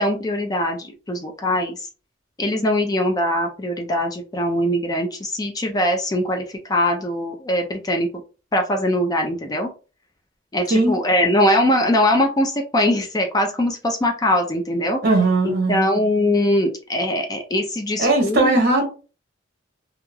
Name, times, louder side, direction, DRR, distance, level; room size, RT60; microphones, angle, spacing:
voice 1, 0.0-1.9 2.4-8.1 8.5-9.7 10.5-15.0 15.4-18.5, left 1 dB, 20° left, 3 dB, 0.4 m, -21 dB
voice 2, 15.0-15.9 18.0-18.9, right 2 dB, 55° right, 1 dB, 1.1 m, -18 dB
3.1 x 2.4 x 2.2 m, 0.34 s
head